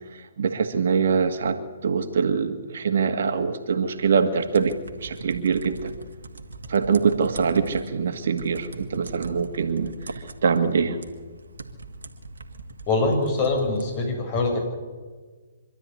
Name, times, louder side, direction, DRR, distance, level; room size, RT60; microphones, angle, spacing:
voice 1, 0.1-6.0 6.7-11.0, right 6 dB, 60° right, 7 dB, 2.0 m, -24 dB
sound 1, 4.0-14.0, right 2 dB, 80° right, 2.0 m, -41 dB
voice 2, 12.9-14.6, left 3 dB, 35° left, 3 dB, 7.2 m, -23 dB
25.5 x 12.5 x 9.8 m, 1.4 s
hypercardioid pair, 135°, 0 cm